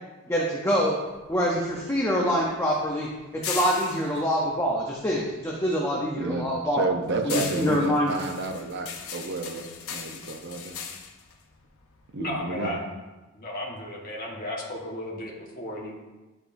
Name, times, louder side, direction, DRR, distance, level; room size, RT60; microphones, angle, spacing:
voice 1, 0.3-1.0 1.3-6.8 7.2-8.1, equal, 10° left, -3 dB, 0.7 m, -25 dB
sound 1, 1.1-5.6 5.9-12.4, left 6 dB, 70° left, 0.7 m, -39 dB
voice 2, 6.1-10.8 12.1-12.8, right 3 dB, 50° right, 4 dB, 0.7 m, -31 dB
voice 3, 12.2-12.8 13.3-15.9, left 1 dB, 40° left, -3 dB, 1.3 m, -34 dB
10.5 x 4.8 x 2.6 m, 1.2 s
head